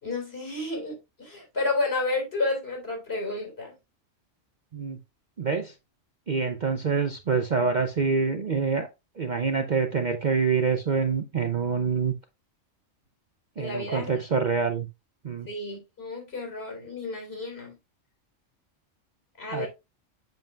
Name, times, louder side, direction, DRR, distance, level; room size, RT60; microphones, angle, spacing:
voice 1, 0.0-3.7 13.6-14.1 15.5-17.8 19.4-19.7, left 2 dB, 50° left, 3.8 m, -31 dB
voice 2, 5.4-5.7 6.3-8.9 9.2-12.1 13.6-14.9 15.2-15.5 19.5-19.7, right 5 dB, 45° right, 0.7 m, -26 dB
7.8 x 7.1 x 2.4 m
omnidirectional pair, 1.3 m